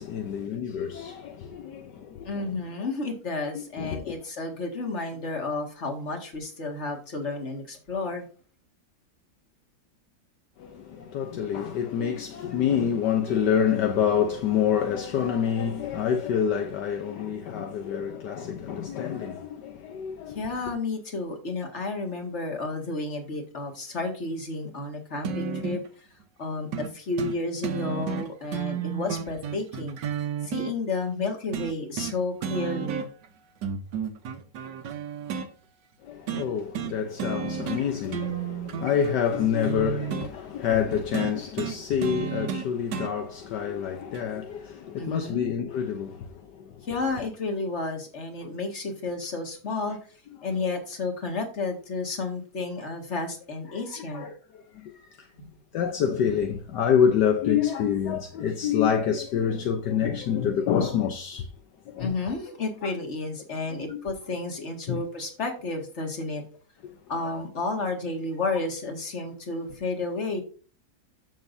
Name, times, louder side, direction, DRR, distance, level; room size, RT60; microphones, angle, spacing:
voice 1, 0.0-2.4 3.5-4.1 10.6-20.4 36.0-46.9 53.7-53.8 54.1-54.3 54.7-54.9 55.2-55.3 55.7-61.5 61.9-62.1 62.8-62.9 63.9-64.0 64.9-65.0 67.2-67.4, left 8 dB, 70° left, 1.4 m, -27 dB
voice 2, 2.3-8.3 20.3-26.1 26.4-30.0 30.4-33.1 45.0-45.5 46.8-50.0 50.4-54.3 55.4-55.5 62.0-66.4 67.1-70.4, left 3 dB, 40° left, 2.1 m, -31 dB
sound 1, 25.2-25.9 26.7-26.9 27.2-27.4 27.6-30.7 31.5-32.2 32.4-33.3 33.6-35.5 36.3-36.5 36.7-36.9 37.2-37.8 38.1-40.3 41.1-43.1 44.1-44.2, right 7 dB, 75° right, 1.6 m, -32 dB
14.0 x 6.5 x 2.6 m
omnidirectional pair, 1.9 m